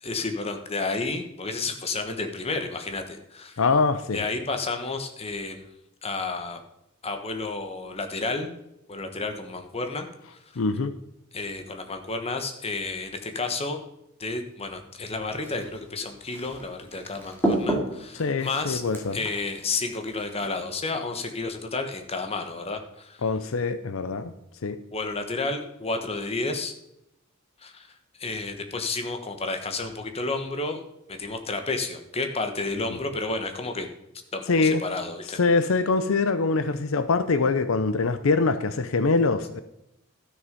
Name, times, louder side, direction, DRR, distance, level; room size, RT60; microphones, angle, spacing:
voice 1, 0.0-3.6 4.1-5.7 6.0-6.6 7.0-8.5 8.9-10.1 11.3-13.8 14.2-18.8 19.1-23.2 24.9-26.7 27.6-27.9 28.2-30.8 31.1-33.9 34.3-35.4, left 3 dB, 30° left, 6 dB, 1.3 m, -31 dB
voice 2, 3.6-4.2 10.6-10.9 18.2-19.2 23.2-24.3 24.6-24.8 32.9-33.0 34.5-34.8 35.4-39.6, left 4 dB, 75° left, 12 dB, 0.6 m, -23 dB
sound 1, 15.4-20.5, right 1 dB, 10° left, 2.3 m, -32 dB
12.5 x 6.6 x 5.2 m, 0.84 s
head